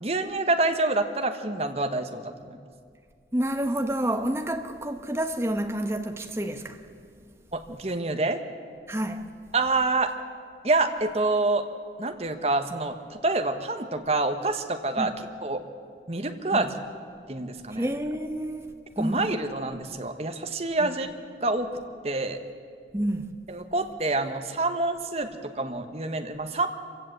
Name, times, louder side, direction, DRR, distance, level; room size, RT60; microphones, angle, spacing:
voice 1, 0.0-2.6 7.5-8.4 9.5-10.1 10.6-11.6 12.0-15.1 15.4-15.6 16.1-16.7 17.3-17.9 19.0-21.1 21.4-21.7 22.0-22.4 23.5-26.7, right 2 dB, 35° right, 1.2 m, -27 dB
voice 2, 3.3-6.8 8.9-9.3 15.0-15.2 16.5-16.7 17.7-19.3 20.8-20.9 22.9-23.3, right 1 dB, 15° right, 1.1 m, -29 dB
25.5 x 16.0 x 8.0 m
head